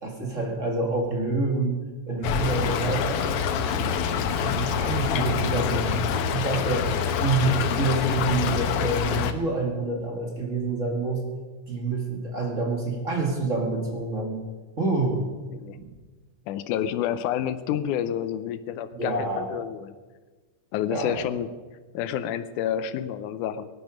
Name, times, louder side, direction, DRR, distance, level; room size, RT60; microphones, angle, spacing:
voice 1, 0.0-1.8 2.1-3.3 3.6-6.9 7.2-11.3 11.7-14.4 14.8-15.2 15.7-15.9 18.9-19.5 20.9-21.2, right 3 dB, 30° right, 0 dB, 2.0 m, -27 dB
Stream / Trickle dribble, 2.2-9.3, left 7 dB, 70° left, 1.4 m, -26 dB
voice 2, 16.5-20.0 20.7-21.5 21.9-23.7, left 10 dB, 85° left, 13 dB, 2.2 m, -29 dB
17.0 x 11.5 x 5.1 m, 1.3 s
omnidirectional pair, 3.5 m